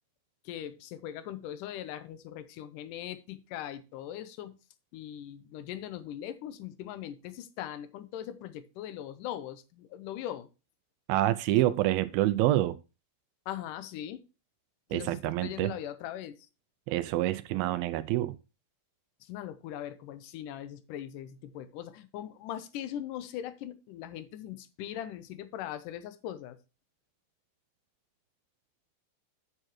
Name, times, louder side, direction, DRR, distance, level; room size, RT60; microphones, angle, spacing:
voice 1, 0.5-4.6 4.9-10.5 13.5-14.2 14.9-16.5 19.2-26.6, left 11 dB, 75° left, 2.1 m, -40 dB
voice 2, 11.1-12.8 14.9-15.7 16.9-18.4, right 15 dB, 80° right, 2.2 m, -27 dB
8.8 x 8.7 x 3.1 m
omnidirectional pair, 4.5 m